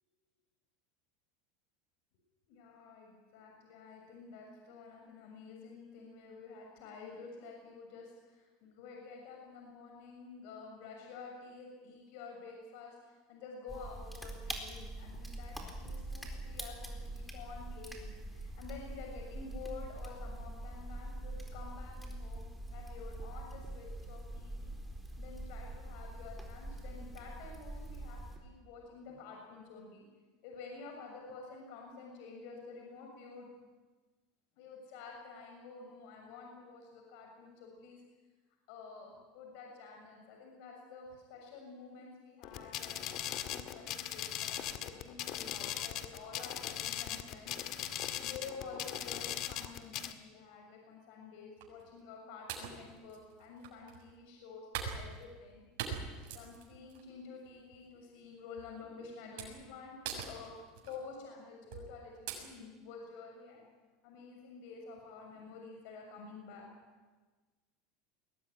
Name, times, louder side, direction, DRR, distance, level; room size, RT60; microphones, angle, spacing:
voice 1, 2.5-24.7 25.2-30.0 30.4-33.5 34.6-38.0 38.7-47.5 48.2-55.7 56.3-60.5 60.8-63.7 64.0-66.7, left 4 dB, 70° left, 1 dB, 6.8 m, -50 dB
sound 1, 13.7-28.4, right 1 dB, ahead, 4.2 m, -44 dB
sound 2, 42.4-50.1, left 11 dB, 55° left, 1.9 m, -39 dB
sound 3, 51.6-51.9 52.5-54.0 54.7-55.5 55.8-57.0 57.5-57.7 58.6-58.7 59.4-59.7 60.0-61.0 61.7-61.9 62.3-62.4, right 7 dB, 70° right, 6.4 m, -42 dB
22.0 x 18.5 x 9.7 m, 1.3 s
supercardioid pair, 125°, 0 cm